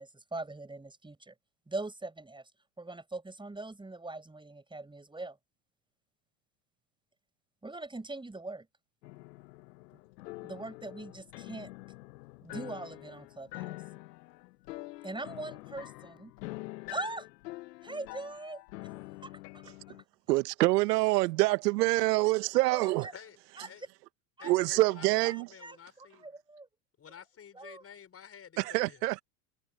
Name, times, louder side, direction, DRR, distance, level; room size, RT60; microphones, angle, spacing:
voice 1, 0.0-1.3 1.7-2.5 2.8-5.4 7.6-8.7 10.4-11.7 12.4-13.8 15.0-16.3 16.9-17.3 17.8-18.6 18.9-19.6 22.7-23.1 23.6-23.7 24.4-24.5 25.2-26.7 27.5-27.8, right 2 dB, 10° right, 7.0 m, -41 dB
sound 1, 9.0-20.0, left 20 dB, 70° left, 1.2 m, -46 dB
voice 2, 20.3-23.1 24.4-25.5 28.6-29.2, right 21 dB, 70° right, 1.7 m, -26 dB
voice 3, 24.4-26.3 27.0-29.1, left 8 dB, 30° left, 5.7 m, -51 dB
hypercardioid pair, 105°, 49 cm